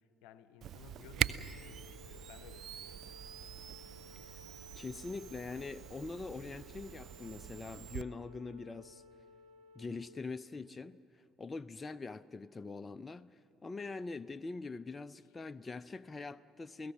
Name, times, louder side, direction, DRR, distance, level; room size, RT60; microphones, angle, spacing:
voice 1, 0.0-3.1, left 9 dB, 70° left, 0.7 m, -57 dB
Camera, 0.6-8.0, right 10 dB, 55° right, 0.5 m, -42 dB
Wind instrument woodwind instrument, 1.0-10.1, left 4 dB, 80° right, 2.3 m, -58 dB
voice 2, 4.7-9.0 9.8-16.9, left 3 dB, 25° left, 0.5 m, -43 dB
28.5 x 17.0 x 6.3 m
figure-of-eight pair, 50°, 0 cm